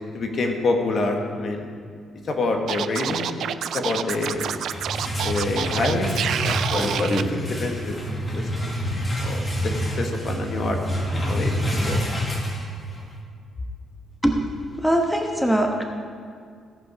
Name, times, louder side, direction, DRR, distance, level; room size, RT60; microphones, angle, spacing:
voice 1, 0.1-1.7 2.3-4.5 5.2-8.0 8.3-8.7 9.2-12.0, left 2 dB, 55° left, 3 dB, 1.4 m, -27 dB
Scratching (performance technique), 2.7-7.2, right 9 dB, 70° right, 0.4 m, -28 dB
sound 1, 4.5-13.1, equal, 25° left, 1.8 m, -27 dB
voice 2, 14.8-15.8, right 1 dB, 5° left, 2 dB, 1.1 m, -21 dB
16.5 x 5.5 x 5.2 m, 2.1 s
cardioid pair, 90°, 0 cm